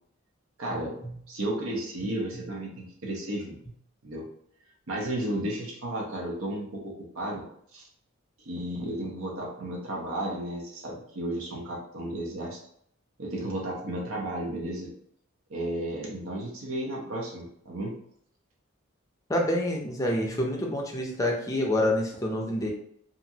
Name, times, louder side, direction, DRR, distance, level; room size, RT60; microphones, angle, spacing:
voice 1, 0.6-0.9 1.3-3.6 4.0-4.3 4.9-7.4 7.7-7.8 8.5-12.6 13.2-14.9 15.5-18.0, right 1 dB, 80° right, -3 dB, 0.7 m, -33 dB
voice 2, 19.3-22.7, left 1 dB, 15° left, 0 dB, 0.4 m, -27 dB
2.8 x 2.4 x 2.7 m, 0.69 s
head